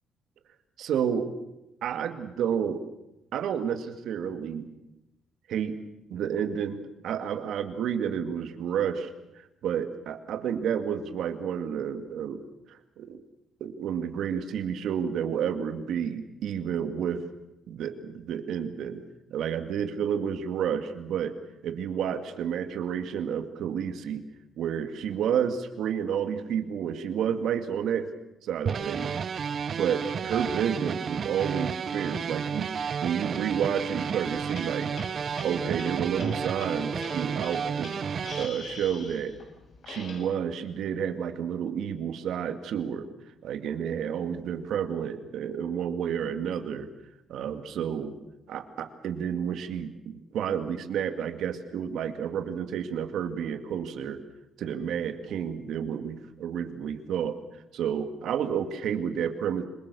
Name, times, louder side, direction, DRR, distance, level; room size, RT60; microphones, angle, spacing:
voice 1, 0.8-1.3 1.8-2.8 3.3-4.7 5.5-5.8 6.1-9.1 9.4-12.4 12.7-13.2 13.6-17.2 17.7-19.0 19.3-21.4 21.6-24.2 24.6-28.1 28.4-29.1 29.7-34.9 35.4-37.9 38.4-39.4 39.9-43.1 43.4-46.9 47.3-48.1 48.5-54.2 54.6-57.4 57.7-59.6, right 8 dB, 80° right, 8 dB, 2.2 m, -30 dB
sound 1, 28.7-38.5, right 6 dB, 50° right, 0.9 m, -32 dB
sound 2, 34.3-40.2, left 3 dB, 60° left, 7.7 m, -43 dB
27.5 x 22.5 x 7.0 m, 0.92 s
cardioid pair, 110°, 0 cm